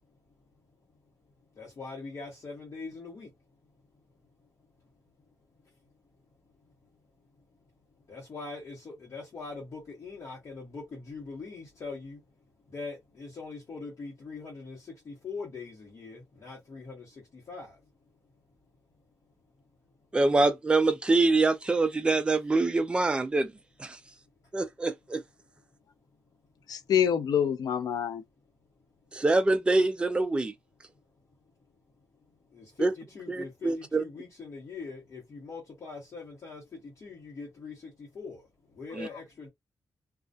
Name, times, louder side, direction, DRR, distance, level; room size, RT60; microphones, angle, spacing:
voice 1, 1.5-3.3 6.6-6.7 8.1-12.2 12.7-17.8 32.5-39.5, left 4 dB, 50° left, 1.0 m, -42 dB
voice 2, 20.1-23.5 23.8-24.0 24.5-25.2 29.1-30.5 32.8-32.9 33.3-34.0 38.9-39.1, right 3 dB, 15° right, 0.3 m, -25 dB
voice 3, 26.7-28.2, left 8 dB, 85° left, 0.5 m, -26 dB
2.5 x 2.3 x 2.2 m
wide cardioid pair, 145°, 6 cm